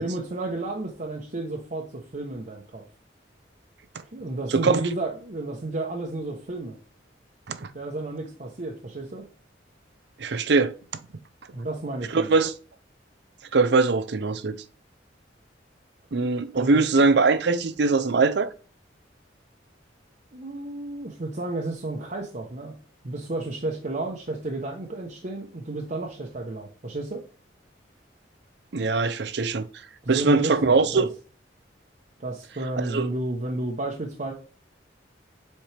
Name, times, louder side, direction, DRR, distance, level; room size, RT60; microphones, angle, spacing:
voice 1, 0.0-2.8 4.1-6.8 7.7-9.2 11.5-12.3 16.5-16.9 20.3-22.8 23.0-27.2 30.0-31.1 32.2-34.3, right 2 dB, 45° right, 0.9 m, -32 dB
voice 2, 4.5-4.8 7.5-7.7 10.2-10.7 12.1-12.5 13.5-14.6 16.1-18.5 28.7-29.7 30.1-31.1 32.8-33.1, right 3 dB, 65° right, 0.6 m, -22 dB
7.3 x 4.5 x 3.4 m
head